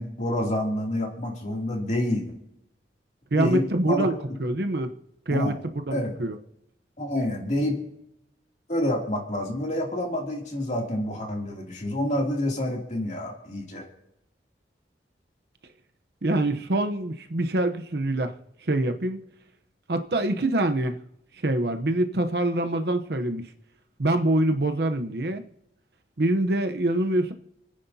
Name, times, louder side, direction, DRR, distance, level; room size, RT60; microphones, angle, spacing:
voice 1, 0.0-2.3 3.3-4.1 5.3-5.6 5.9-6.1 7.0-7.8 8.7-13.9, left 1 dB, 40° left, 0 dB, 2.7 m, -28 dB
voice 2, 3.3-4.1 4.4-4.9 5.3-6.4 16.2-18.3 18.6-19.2 19.9-21.0 21.4-23.5 24.0-25.4 26.2-27.3, right 1 dB, 60° right, 7 dB, 0.8 m, -25 dB
29.0 x 9.9 x 2.8 m, 0.82 s
head